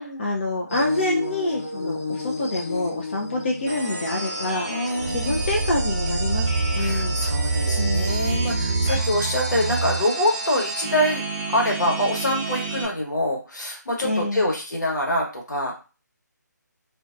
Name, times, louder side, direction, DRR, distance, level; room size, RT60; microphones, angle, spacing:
voice 1, 0.0-7.2 7.8-8.2 14.0-14.4, left 2 dB, 35° left, 0 dB, 0.4 m, -27 dB
sound 1, 0.7-6.7, left 4 dB, 50° left, 0.9 m, -33 dB
sound 2, 3.7-12.8, right 2 dB, 15° right, 0.7 m, -31 dB
voice 2, 4.7-5.5 6.8-11.2 11.5-15.8, left 1 dB, 70° left, -1 dB, 1.1 m, -25 dB
sound 3, 5.0-10.0, right 3 dB, 55° right, 0.7 m, -25 dB
2.4 x 2.1 x 2.4 m, 0.32 s
figure-of-eight pair, 150°, 10 cm